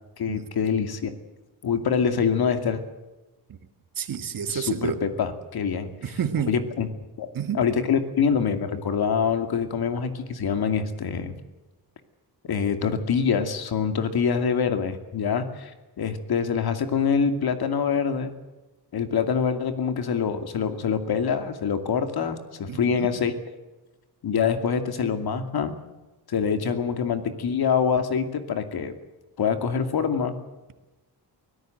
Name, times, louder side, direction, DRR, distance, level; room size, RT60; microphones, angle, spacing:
voice 1, 0.2-1.1 1.6-2.8 4.5-5.9 6.5-6.9 7.2-7.3 7.5-11.3 12.4-15.7 16.0-18.3 18.9-23.3 24.2-25.7 26.3-28.9 29.4-30.4, left 6 dB, 65° left, 8 dB, 2.6 m, -25 dB
voice 2, 4.0-5.0 6.0-6.5 7.3-7.6 22.7-23.1, right 7 dB, 55° right, 8 dB, 2.2 m, -29 dB
24.0 x 17.5 x 7.9 m, 1.1 s
wide cardioid pair, 135°, 41 cm